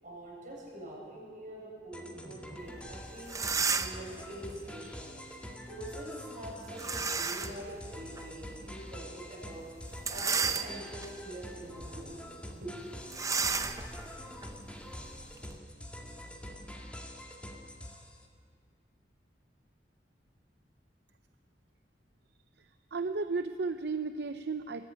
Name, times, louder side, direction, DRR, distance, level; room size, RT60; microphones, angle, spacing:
voice 1, 0.0-5.1 5.7-12.8, right 1 dB, 45° right, -3 dB, 7.6 m, -45 dB
sound 1, 1.9-18.2, equal, 5° left, 2.0 m, -45 dB
sound 2, 2.9-3.0 3.2-4.1 6.8-7.6 8.2-8.3 9.9-11.1 11.6-11.8 12.1-12.2 13.1-15.6, right 5 dB, 20° right, 0.7 m, -33 dB
voice 2, 22.9-24.9, right 4 dB, 65° right, 10 dB, 0.6 m, -34 dB
22.0 x 17.0 x 9.4 m, 2.2 s
head